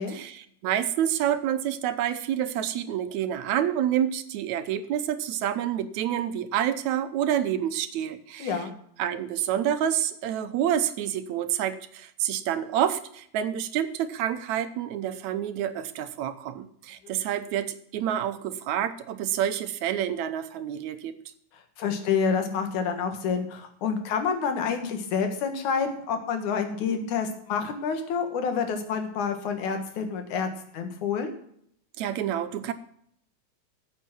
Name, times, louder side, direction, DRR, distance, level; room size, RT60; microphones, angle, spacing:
voice 1, 0.0-8.5 9.0-21.1 32.0-32.7, right 10 dB, 80° right, 11 dB, 2.1 m, -28 dB
voice 2, 8.4-8.7 17.0-17.1 21.5-31.3, left 6 dB, 90° left, 6 dB, 3.0 m, -28 dB
14.5 x 7.4 x 6.0 m, 0.67 s
omnidirectional pair, 3.3 m